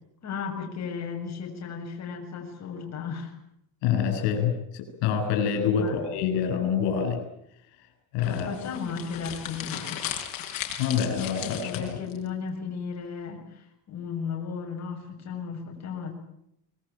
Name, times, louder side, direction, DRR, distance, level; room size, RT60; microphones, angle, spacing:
voice 1, 0.2-3.3 5.8-5.9 8.3-10.0 11.4-16.2, left 6 dB, 40° left, 1 dB, 7.4 m, -35 dB
voice 2, 3.8-7.2 8.1-8.5 10.8-11.9, left 7 dB, 90° left, 6 dB, 7.9 m, -26 dB
sound 1, 8.2-12.2, left 10 dB, 55° left, 5.8 m, -36 dB
25.0 x 22.0 x 9.0 m, 0.76 s
cardioid pair, 130°, 40 cm